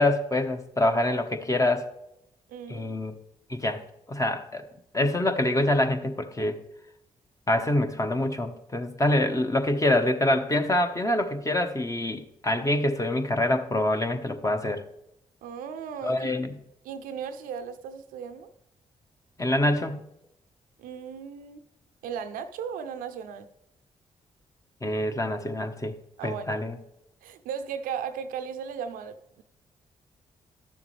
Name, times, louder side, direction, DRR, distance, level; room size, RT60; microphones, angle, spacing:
voice 1, 0.0-1.9 2.7-3.1 3.5-3.8 4.1-4.6 4.9-6.6 7.5-14.8 16.0-16.5 19.4-20.0 24.8-25.9 26.2-26.7, left 1 dB, 20° left, 6 dB, 1.2 m, -25 dB
voice 2, 2.5-2.9 15.4-16.3 16.8-18.5 20.8-21.6 22.0-23.5 26.2-26.6 27.2-29.4, right 7 dB, 80° right, 10 dB, 0.6 m, -36 dB
11.5 x 7.0 x 3.3 m, 0.82 s
hypercardioid pair, 45°, 14 cm